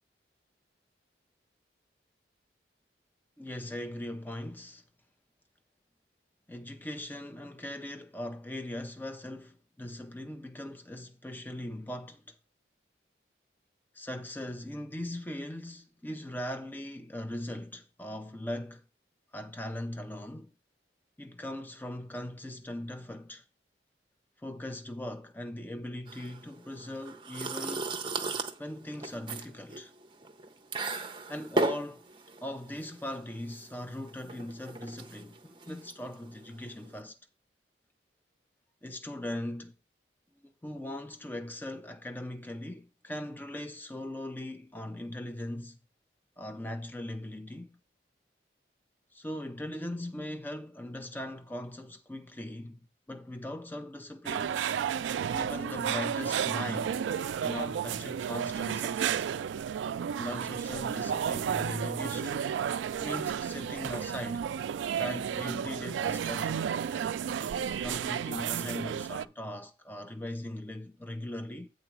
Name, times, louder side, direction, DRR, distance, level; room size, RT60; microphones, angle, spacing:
voice 1, 3.4-4.8 6.5-12.4 13.9-18.8 19.3-20.5 21.2-23.4 24.4-27.9 28.6-29.9 31.3-32.0 32.4-37.2 38.8-39.7 40.6-45.8 46.4-47.8 49.1-52.8 53.1-54.6 55.3-57.0 57.4-59.3 60.2-62.6 63.0-64.5 65.0-66.7 67.7-71.7, left 1 dB, 10° left, 0.5 m, -39 dB
sound 1, 26.1-37.0, right 3 dB, 25° right, 0.6 m, -37 dB
sound 2, 54.3-69.2, right 8 dB, 85° right, 0.3 m, -32 dB
8.1 x 3.8 x 6.0 m
head